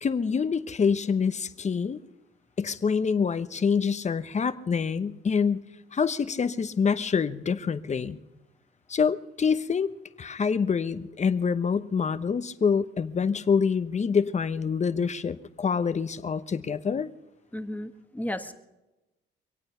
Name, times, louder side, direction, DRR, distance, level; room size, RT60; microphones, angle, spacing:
voice 1, 0.0-2.0 2.6-5.6 5.9-8.2 8.9-9.9 10.2-17.1, left 6 dB, 35° left, 12 dB, 1.0 m, -26 dB
voice 2, 17.5-18.5, left 1 dB, 10° left, 7 dB, 1.4 m, -34 dB
25.0 x 8.8 x 5.7 m, 1.0 s
cardioid pair, 90°, 20 cm